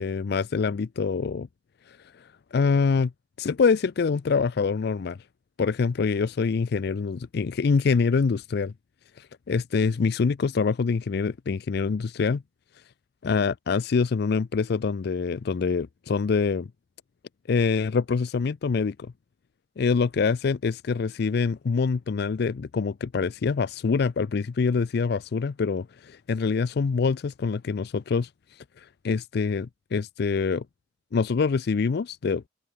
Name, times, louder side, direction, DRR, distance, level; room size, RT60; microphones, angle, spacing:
voice 1, 0.0-1.5 1.9-3.1 3.4-5.2 5.6-8.7 9.2-12.4 13.2-16.7 17.5-19.1 19.8-30.6 31.1-32.4, left 5 dB, 60° left, 0.4 m, -25 dB
open air
head